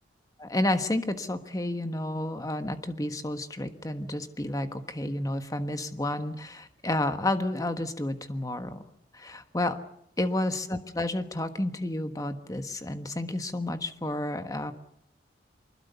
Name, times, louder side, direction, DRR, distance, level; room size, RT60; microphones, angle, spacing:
voice 1, 0.4-8.8 9.1-9.8 10.2-14.7, left 1 dB, 20° left, 8 dB, 1.4 m, -31 dB
24.5 x 21.0 x 6.9 m, 0.76 s
head